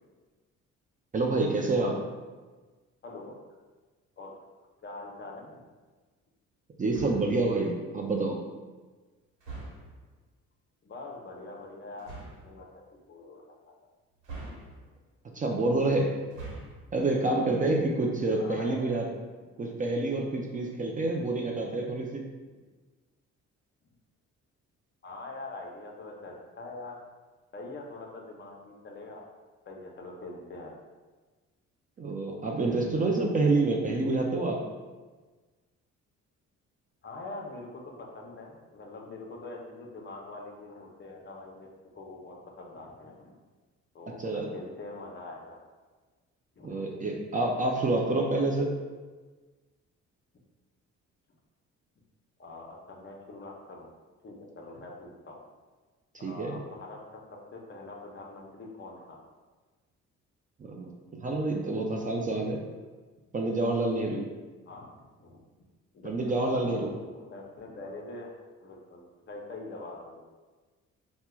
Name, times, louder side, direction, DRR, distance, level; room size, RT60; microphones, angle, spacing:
voice 1, 1.1-2.0 6.8-8.4 15.3-16.1 16.9-19.1 19.6-22.2 32.0-34.6 44.2-44.5 46.6-48.7 56.2-56.6 60.6-60.9 61.2-62.6 63.3-64.3 66.0-66.9, right 2 dB, 25° right, 0 dB, 0.4 m, -27 dB
voice 2, 3.0-3.4 4.2-4.4 4.8-5.6 10.8-12.2 12.4-12.8 13.1-13.7 18.3-18.9 19.5-19.9 20.5-21.9 25.0-27.0 27.5-29.2 29.7-30.7 37.0-43.4 43.9-45.6 46.6-46.9 52.4-53.9 54.2-55.4 56.2-57.2 57.5-59.2 61.6-62.4 64.6-65.4 65.9-68.3 68.6-70.2, left 2 dB, 35° left, 0 dB, 0.6 m, -44 dB
sound 1, 6.9-7.4 9.4-10.0 12.0-12.5 14.2-15.0 16.2-16.9, right 3 dB, 85° right, 1.1 m, -43 dB
4.4 x 2.1 x 2.2 m, 1.3 s
cardioid pair, 90°, 30 cm